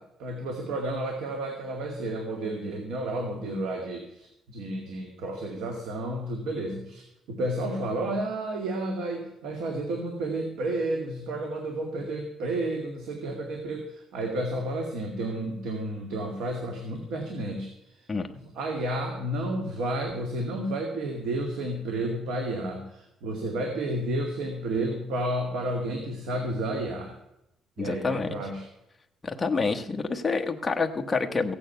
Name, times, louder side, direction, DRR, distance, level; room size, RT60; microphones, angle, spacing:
voice 1, 0.0-18.0 18.3-27.1 27.8-28.7, right 1 dB, 85° right, 3 dB, 2.2 m, -31 dB
voice 2, 27.8-28.4 29.2-31.5, left 4 dB, 15° left, 4 dB, 1.1 m, -28 dB
15.5 x 8.9 x 5.6 m, 0.85 s
cardioid pair, 155°, 0 cm